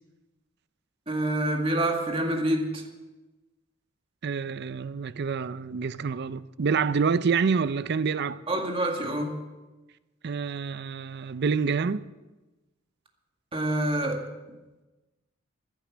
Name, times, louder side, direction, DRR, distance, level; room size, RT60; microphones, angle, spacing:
voice 1, 1.1-2.8 8.5-9.4 13.5-14.3, right 1 dB, 30° right, 2.0 m, -27 dB
voice 2, 4.2-8.4 10.2-12.1, right 5 dB, 55° right, 0.5 m, -27 dB
15.5 x 10.0 x 6.2 m
head